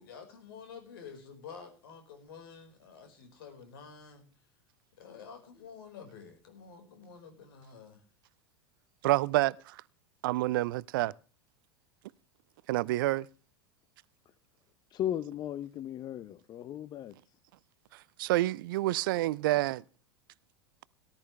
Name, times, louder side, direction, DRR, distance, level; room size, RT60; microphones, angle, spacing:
voice 1, 0.0-4.2 5.0-8.0, left 6 dB, 60° left, 4.8 m, -49 dB
voice 2, 9.0-9.8 10.2-11.1 12.7-13.3 17.9-19.8, right 17 dB, 55° right, 0.5 m, -28 dB
voice 3, 14.9-17.1, left 11 dB, 30° left, 0.8 m, -36 dB
18.0 x 12.5 x 3.3 m
figure-of-eight pair, 85°, 14 cm